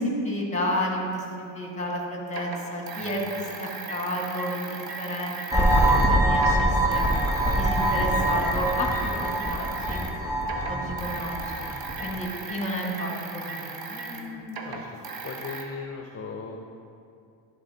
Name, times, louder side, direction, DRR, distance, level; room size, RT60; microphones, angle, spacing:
voice 1, 0.0-7.0 7.5-10.0 10.7-11.6 12.0-14.2, equal, 15° left, 0 dB, 1.7 m, -31 dB
sound 1, 1.2-1.3 2.3-6.1 6.3-10.2 10.4-15.6, right 4 dB, 50° right, 1.0 m, -37 dB
sound 2, 5.5-12.2, right 1 dB, 5° right, 1.2 m, -24 dB
voice 2, 11.7-12.2 13.5-16.6, left 4 dB, 30° left, 2 dB, 0.7 m, -40 dB
12.0 x 4.2 x 3.9 m, 2.5 s
supercardioid pair, 75°, 46 cm